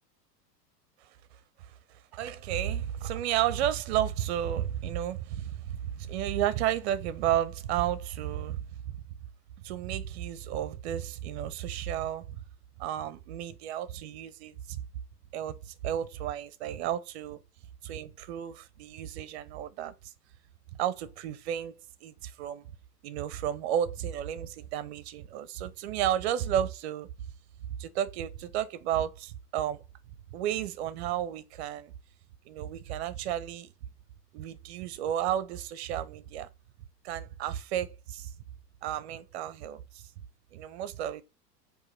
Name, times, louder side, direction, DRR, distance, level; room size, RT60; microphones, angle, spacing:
voice 1, 2.1-9.0 9.6-12.4 12.8-14.8 15.3-17.4 17.8-19.9 20.8-22.7 23.0-27.1 27.8-29.8 30.3-31.9 32.5-33.7 34.3-36.5 37.0-38.3 38.8-40.0 40.5-41.2, right 11 dB, 40° right, 0.6 m, -32 dB
4.7 x 2.7 x 4.1 m
figure-of-eight pair, 95°, 49 cm